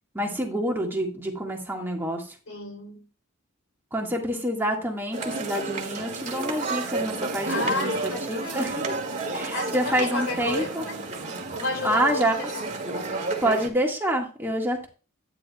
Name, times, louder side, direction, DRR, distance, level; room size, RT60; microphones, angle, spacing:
voice 1, 0.1-2.4 3.9-9.0 9.3-10.9 11.8-12.3 13.4-14.9, right 1 dB, 10° right, 0 dB, 1.7 m, -27 dB
voice 2, 2.5-3.1 7.5-8.7 9.5-11.0 11.5-12.7, left 2 dB, 75° left, 4 dB, 3.1 m, -31 dB
sound 1, 5.1-13.7, right 3 dB, 35° right, 1.9 m, -31 dB
11.0 x 9.6 x 2.3 m, 0.33 s
head